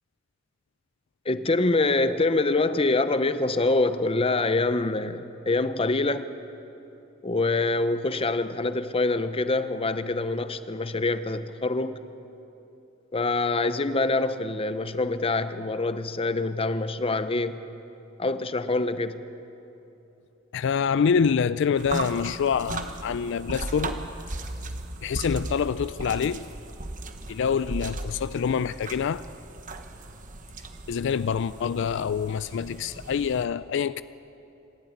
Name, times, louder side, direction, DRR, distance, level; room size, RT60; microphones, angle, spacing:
voice 1, 1.3-6.3 7.2-12.1 13.1-17.6 18.2-19.2, left 2 dB, 30° left, 0.7 m, -25 dB
voice 2, 20.5-24.1 25.0-26.5 27.3-29.2 30.9-34.0, left 6 dB, 60° left, 0.4 m, -26 dB
sound 1, 21.8-33.5, right 2 dB, 40° right, 1.2 m, -37 dB
26.0 x 12.0 x 9.5 m
head